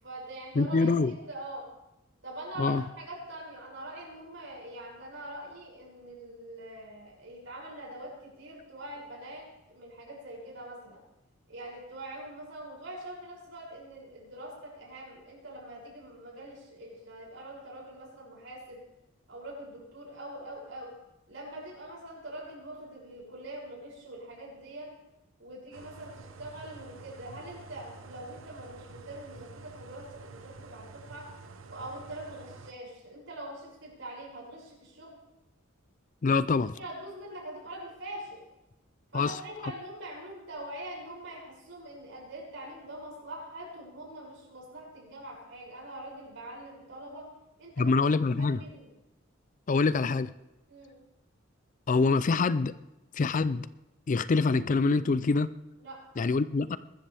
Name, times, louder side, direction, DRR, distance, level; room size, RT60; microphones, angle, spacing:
voice 1, 0.0-1.6 2.2-11.0 11.5-18.8 19.3-20.9 21.3-24.9 25.4-31.3 31.7-35.1 36.8-38.4 39.1-47.3 47.6-47.8 48.4-48.9 50.7-51.0 55.8-56.0, right 1 dB, 65° right, -3 dB, 6.7 m, -43 dB
voice 2, 0.6-1.1 2.6-2.8 36.2-36.7 39.1-39.7 47.8-48.6 49.7-50.3 51.9-52.7 53.1-53.7 54.1-55.5 56.2-56.8, left 4 dB, 40° left, 15 dB, 0.4 m, -25 dB
sound 1, 25.7-32.7, right 4 dB, 80° right, 0.9 m, -49 dB
22.0 x 13.5 x 3.4 m, 0.94 s
head